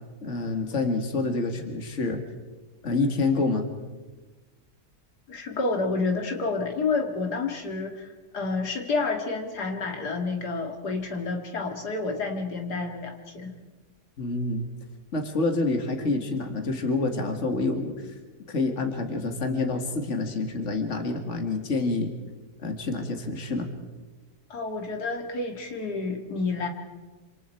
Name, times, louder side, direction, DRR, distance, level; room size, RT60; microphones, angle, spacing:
voice 1, 0.2-2.2 2.8-3.7 14.2-14.7 15.1-18.2 18.5-22.1 22.6-23.7, left 3 dB, 45° left, 5 dB, 2.4 m, -27 dB
voice 2, 5.3-13.5 24.5-26.7, left 3 dB, 85° left, 2 dB, 2.8 m, -29 dB
27.5 x 26.5 x 4.6 m, 1.2 s
omnidirectional pair, 1.7 m